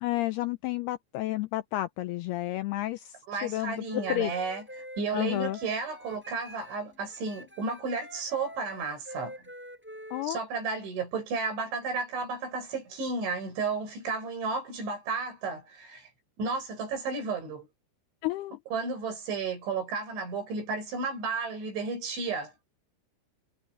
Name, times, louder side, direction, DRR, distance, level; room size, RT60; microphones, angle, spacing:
voice 1, 0.0-3.1 3.4-4.3 5.1-5.6 10.1-10.4 18.2-18.6, left 16 dB, 90° left, 2.3 m, -31 dB
voice 2, 3.3-4.7 5.0-9.3 10.2-16.1 16.4-17.7 18.7-22.5, right 4 dB, 75° right, 10.0 m, -33 dB
Wind instrument woodwind instrument, 3.8-6.8 7.1-10.3, equal, ahead, 6.5 m, -46 dB
omnidirectional pair, 5.3 m